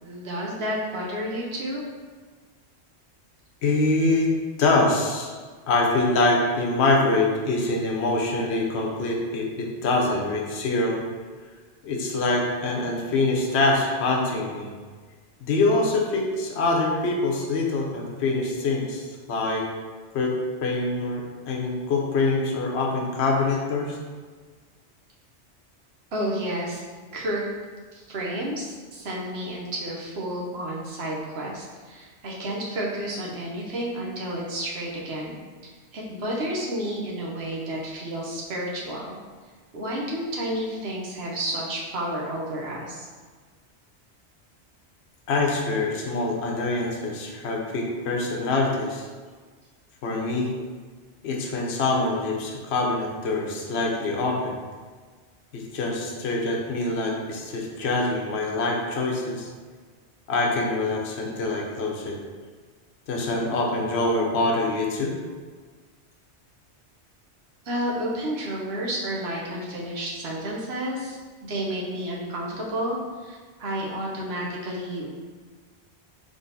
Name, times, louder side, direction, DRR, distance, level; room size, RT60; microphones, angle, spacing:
voice 1, 0.0-1.8 26.1-26.8 27.1-27.4 27.9-35.4 35.6-39.2 39.7-43.1 67.6-75.3, right 1 dB, 65° right, -3 dB, 1.2 m, -31 dB
voice 2, 3.6-4.3 4.6-5.3 5.7-11.0 11.8-14.7 15.4-19.7 20.1-20.3 20.6-24.0 45.3-49.0 50.0-50.5 51.2-54.6 55.5-59.5 60.3-62.2 63.1-65.2, left 2 dB, 70° left, 0 dB, 1.0 m, -24 dB
3.8 x 3.5 x 3.9 m, 1.5 s
omnidirectional pair, 1.2 m